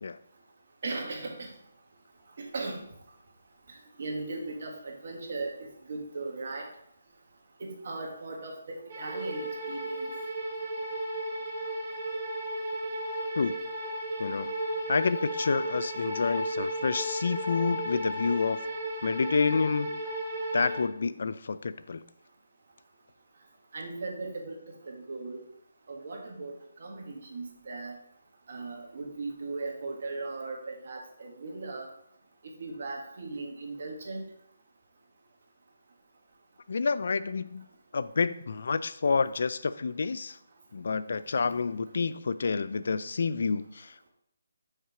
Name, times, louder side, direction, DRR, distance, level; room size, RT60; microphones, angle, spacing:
voice 1, 0.8-1.5 2.4-2.8 4.0-6.7 7.6-10.1 23.7-25.4 25.9-27.9 28.5-31.9 32.6-34.2 41.1-41.7, right 3 dB, 55° right, 1 dB, 1.7 m, -38 dB
sound 1, 8.9-20.8, equal, 35° right, 2.4 m, -34 dB
voice 2, 14.2-14.5 14.9-18.6 19.0-20.0 20.5-22.0 36.7-37.6 37.9-40.4 40.7-44.1, left 4 dB, 60° left, 14 dB, 0.4 m, -29 dB
6.5 x 4.4 x 4.9 m, 0.73 s
figure-of-eight pair, 155°, 0 cm